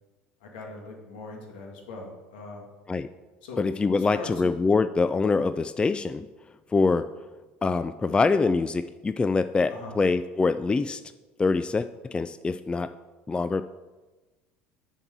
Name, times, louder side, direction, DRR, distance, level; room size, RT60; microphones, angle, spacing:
voice 1, 0.4-2.7 3.4-3.6 3.9-4.3 9.7-9.9, left 3 dB, 75° left, 0 dB, 1.8 m, -40 dB
voice 2, 3.6-6.3 6.7-7.1 7.6-11.0 11.4-12.9 13.3-13.6, left 4 dB, 15° left, 12 dB, 0.3 m, -24 dB
7.1 x 4.6 x 6.9 m, 1.2 s
hypercardioid pair, 70°, 6 cm